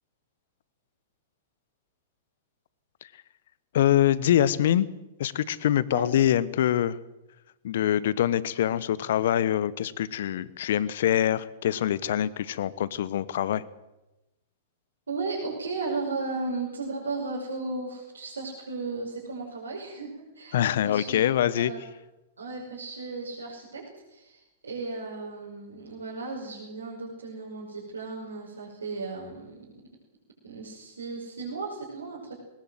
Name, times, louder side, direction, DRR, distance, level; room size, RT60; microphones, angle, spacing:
voice 1, 3.7-4.9 5.2-7.0 7.6-13.6 20.5-21.7, left 11 dB, 60° left, 18 dB, 1.1 m, -24 dB
voice 2, 15.1-21.2 21.5-21.8 22.4-29.8 30.4-32.4, right 3 dB, 75° right, -3 dB, 5.8 m, -35 dB
21.0 x 19.5 x 7.9 m, 0.99 s
figure-of-eight pair, 100°, 0 cm